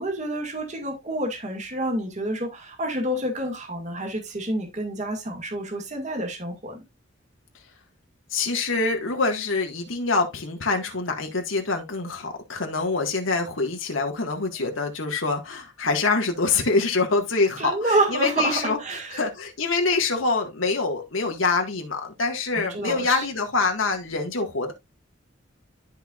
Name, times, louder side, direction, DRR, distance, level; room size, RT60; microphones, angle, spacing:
voice 1, 0.0-6.8 17.6-19.2 22.5-23.2, right 1 dB, 35° right, 2.3 m, -28 dB
voice 2, 8.3-18.8 19.2-24.7, left 3 dB, 80° left, 1.8 m, -25 dB
13.0 x 4.6 x 2.5 m
head